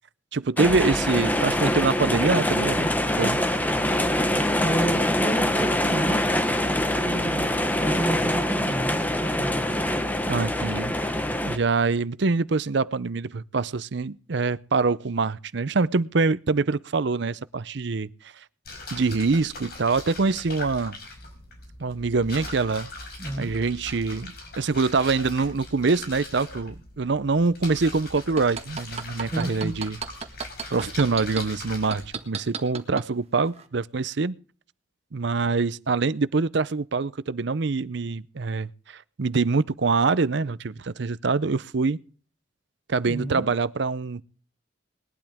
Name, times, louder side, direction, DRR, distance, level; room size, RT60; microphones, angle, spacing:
voice 1, 0.3-2.9 3.2-3.4 10.3-18.1 18.9-21.0 21.8-22.9 23.4-30.0 30.7-34.3 35.1-42.0 42.9-44.2, right 4 dB, 60° right, 0.6 m, -25 dB
sound 1, 0.6-11.6, left 1 dB, 10° left, 1.1 m, -24 dB
voice 2, 4.3-6.7 7.0-7.5 7.8-9.8 23.2-23.5 29.3-29.7 43.0-43.5, right 1 dB, 25° left, 7.2 m, -31 dB
sound 2, 18.6-32.2, left 2 dB, 50° left, 5.2 m, -41 dB
sound 3, 28.2-31.4 31.9-33.1 33.5-33.6, right 5 dB, 30° right, 1.6 m, -32 dB
20.5 x 12.0 x 3.5 m
head